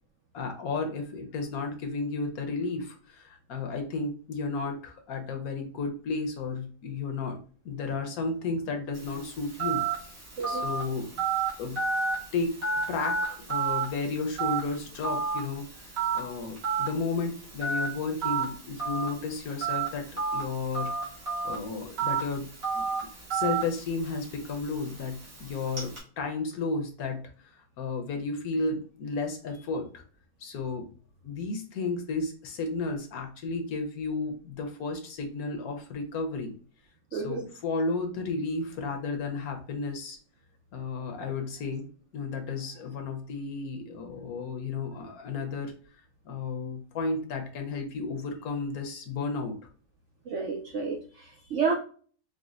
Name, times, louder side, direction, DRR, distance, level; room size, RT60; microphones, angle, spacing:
voice 1, 0.3-7.4 7.6-10.1 10.5-11.2 11.6-11.8 12.3-12.6 12.9-15.6 16.1-20.9 21.4-22.5 22.7-22.8 23.3-27.2 27.5-30.0 30.4-30.9 31.2-36.5 37.1-40.2 40.7-41.8 42.1-45.7 46.2-49.6, left 3 dB, 70° left, 4 dB, 1.1 m, -33 dB
Telephone, 8.9-26.0, right 5 dB, 55° right, 1.9 m, -32 dB
voice 2, 37.1-37.4 50.3-51.7, right 5 dB, 70° right, 0 dB, 0.7 m, -30 dB
4.9 x 2.1 x 2.4 m, 0.42 s
omnidirectional pair, 1.8 m